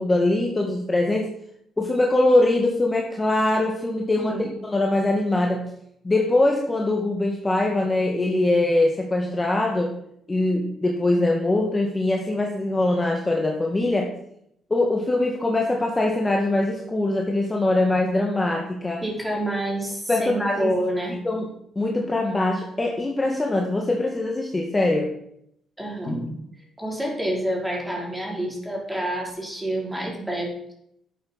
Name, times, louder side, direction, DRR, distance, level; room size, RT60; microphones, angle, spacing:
voice 1, 0.0-1.3 1.8-5.7 6.0-10.0 10.3-14.1 14.7-19.0 20.1-20.7 21.2-21.5 21.8-25.1, left 2 dB, 20° left, 0 dB, 1.9 m, -22 dB
voice 2, 19.0-21.2 25.8-26.4 26.8-30.7, right 1 dB, 5° right, -1 dB, 4.5 m, -28 dB
12.0 x 8.0 x 5.6 m, 0.73 s
cardioid pair, 90°, 0 cm